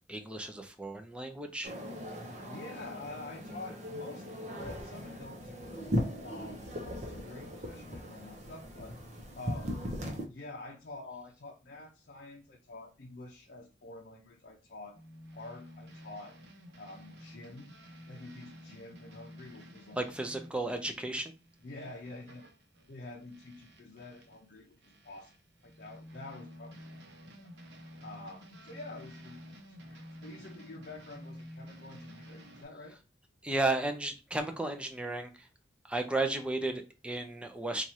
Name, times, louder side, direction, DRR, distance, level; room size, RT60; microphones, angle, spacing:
voice 1, 0.1-1.7 20.0-21.3 33.4-35.5 35.9-37.8, right 2 dB, 5° right, 0.5 m, -34 dB
sound 1, 1.6-10.2, equal, 40° right, 0.8 m, -38 dB
voice 2, 2.4-5.9 6.2-9.8 10.3-15.0 15.3-16.4 16.8-17.8 18.1-20.0 21.6-22.5 22.9-25.4 25.6-27.5 27.8-29.4 29.8-33.0, left 2 dB, 60° left, 0.6 m, -48 dB
sound 2, 14.9-24.4 24.8-32.6, equal, 70° right, 0.8 m, -51 dB
3.1 x 2.4 x 4.1 m
head